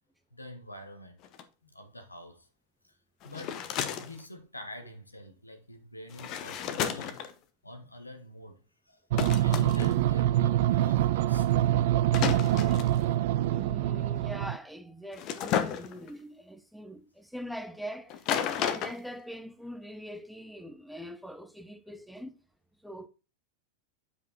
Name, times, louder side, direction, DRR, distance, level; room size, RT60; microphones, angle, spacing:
voice 1, 0.3-1.2 1.6-2.5 2.8-2.9 3.2-3.6 4.0-7.2 7.6-8.6 8.8-11.7, left 2 dB, 85° left, 1.5 m, -45 dB
sound 1, 1.2-1.4 3.2-4.2 6.1-7.3 9.2-10.0 12.1-13.0 15.1-16.1 18.1-19.0, left 9 dB, 40° left, 1.0 m, -32 dB
sound 2, 9.1-14.6, right 13 dB, 55° right, 0.4 m, -25 dB
voice 2, 13.5-18.2 18.5-22.4 22.8-23.1, equal, ahead, 0.6 m, -42 dB
8.3 x 5.1 x 4.2 m
figure-of-eight pair, 90°, 0 cm